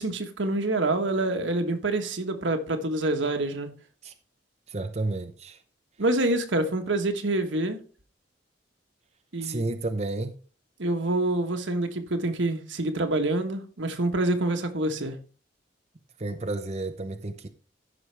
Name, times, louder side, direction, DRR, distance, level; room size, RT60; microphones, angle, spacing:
voice 1, 0.0-3.7 6.0-7.8 9.3-9.7 10.8-15.2, right 2 dB, 85° right, 1.3 m, -26 dB
voice 2, 4.7-5.6 9.4-10.4 16.2-17.5, right 2 dB, 35° right, 0.7 m, -31 dB
14.5 x 5.6 x 3.3 m
head